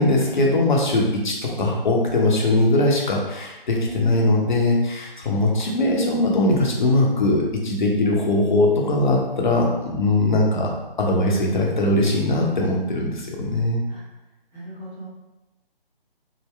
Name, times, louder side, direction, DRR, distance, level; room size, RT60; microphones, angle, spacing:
voice 1, 0.0-10.7 11.0-13.8, left 2 dB, 55° left, -1 dB, 0.8 m, -20 dB
voice 2, 3.8-4.3 13.9-14.0 14.5-15.1, equal, 5° right, -13 dB, 0.8 m, -37 dB
3.7 x 2.1 x 3.2 m, 1.0 s
figure-of-eight pair, 145°, 29 cm